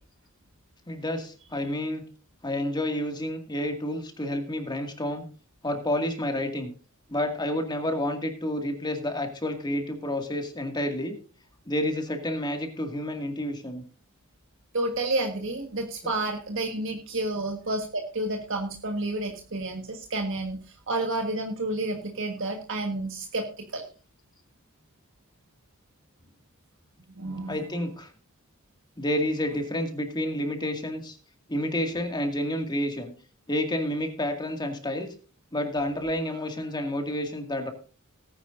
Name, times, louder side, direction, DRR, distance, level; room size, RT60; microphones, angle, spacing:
voice 1, 0.9-2.0 2.4-5.2 5.6-6.7 7.1-11.2 11.7-13.8 16.0-16.1 27.5-28.1 29.0-31.2 31.5-33.1 33.5-35.1 35.5-37.7, left 1 dB, 20° left, 4 dB, 2.1 m, -29 dB
voice 2, 14.7-23.8 27.2-27.6, right 2 dB, 65° right, 2 dB, 1.6 m, -30 dB
18.5 x 10.0 x 2.6 m, 0.37 s
head